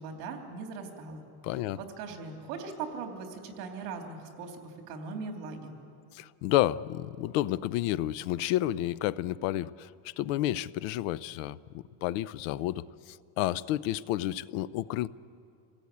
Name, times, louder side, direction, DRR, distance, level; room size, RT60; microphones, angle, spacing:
voice 1, 0.0-1.3 1.7-5.8, right 4 dB, 70° right, 3 dB, 3.3 m, -40 dB
voice 2, 1.4-1.8 6.1-15.1, left 14 dB, 55° left, 19 dB, 0.6 m, -31 dB
27.0 x 17.5 x 8.5 m, 2.5 s
cardioid pair, 170°, 48 cm